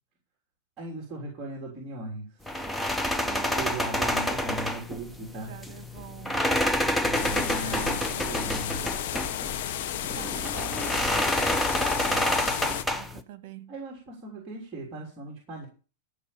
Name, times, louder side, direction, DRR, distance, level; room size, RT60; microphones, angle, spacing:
voice 1, 0.8-2.5 3.5-5.5 7.0-8.0 8.3-8.8 13.7-15.7, right 2 dB, 20° right, 3.3 m, -38 dB
sound 1, 2.5-13.2, left 1 dB, 5° left, 0.8 m, -28 dB
voice 2, 3.1-3.7 5.3-6.6 7.2-8.3 10.2-13.8, right 12 dB, 50° right, 1.9 m, -44 dB
sound 2, 7.1-12.8, left 11 dB, 60° left, 0.8 m, -33 dB
13.0 x 5.8 x 6.9 m
supercardioid pair, 160°, 0 cm